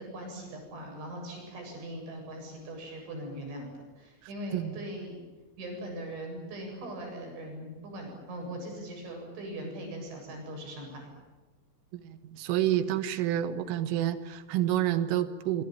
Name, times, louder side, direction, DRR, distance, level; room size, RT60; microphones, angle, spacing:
voice 1, 0.0-5.2 5.6-11.1, right 1 dB, 70° right, 2 dB, 10.0 m, -40 dB
voice 2, 11.9-15.6, right 12 dB, 90° right, 11 dB, 4.0 m, -29 dB
25.5 x 24.0 x 9.1 m, 1.2 s
omnidirectional pair, 5.6 m